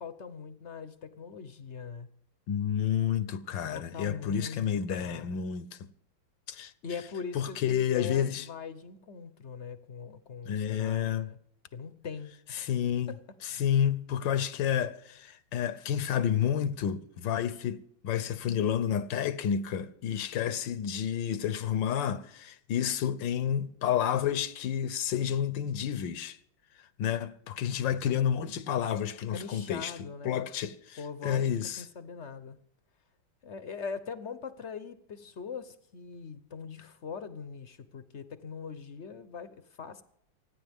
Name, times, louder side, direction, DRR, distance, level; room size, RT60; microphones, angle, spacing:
voice 1, 0.0-2.1 3.7-4.7 4.9-5.4 6.8-11.4 11.7-12.7 13.1-13.2 29.3-30.5 31.0-32.6 33.4-40.0, left 5 dB, 50° left, 0.9 m, -41 dB
voice 2, 2.5-5.8 6.5-6.7 7.3-8.5 10.4-11.3 12.5-13.1 13.4-26.4 27.0-29.9 30.2-31.8, left 9 dB, 75° left, 1.5 m, -30 dB
29.0 x 10.0 x 3.6 m
omnidirectional pair, 2.0 m